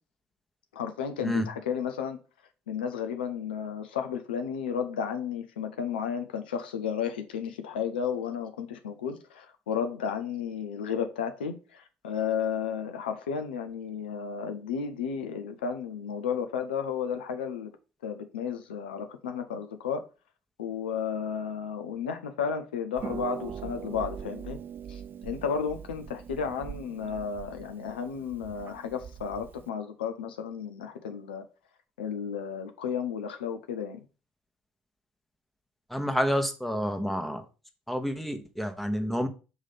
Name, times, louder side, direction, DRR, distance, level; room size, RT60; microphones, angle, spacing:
voice 1, 0.7-2.2 2.7-17.7 18.0-20.0 20.6-24.6 24.9-31.4 32.0-34.0, left 7 dB, 80° left, 0.6 m, -33 dB
Harp, 23.0-29.7, right 8 dB, 40° right, 0.4 m, -42 dB
voice 2, 35.9-37.4 37.9-39.3, equal, 5° left, 1.1 m, -29 dB
5.5 x 3.2 x 5.6 m
hypercardioid pair, 55°, 5 cm